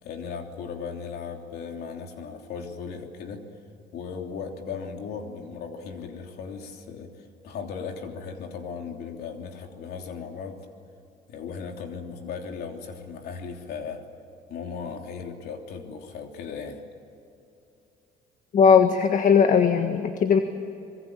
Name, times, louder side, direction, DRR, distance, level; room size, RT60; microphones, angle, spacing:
voice 1, 0.0-3.4 3.9-10.6 11.3-14.0 14.5-16.8, left 6 dB, 70° left, 3 dB, 3.3 m, -37 dB
voice 2, 18.5-20.4, left 6 dB, 50° left, 7 dB, 1.6 m, -18 dB
26.0 x 22.5 x 8.9 m, 2.7 s
cardioid pair, 110°, 17 cm